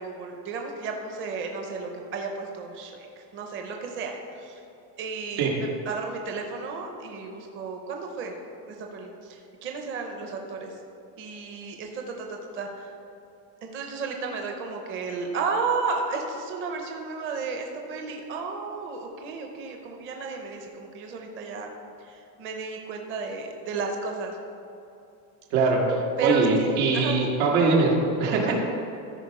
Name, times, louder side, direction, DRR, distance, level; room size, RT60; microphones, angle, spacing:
voice 1, 0.0-4.6 5.0-8.3 8.7-10.7 11.2-12.9 13.6-21.7 22.0-24.4 26.2-27.2 28.4-28.5, right 4 dB, 30° right, 2 dB, 0.7 m, -33 dB
voice 2, 25.5-27.9 28.2-28.5, right 3 dB, 90° right, -1 dB, 2.2 m, -22 dB
14.0 x 4.9 x 4.8 m, 2.7 s
cardioid pair, 175°, 42 cm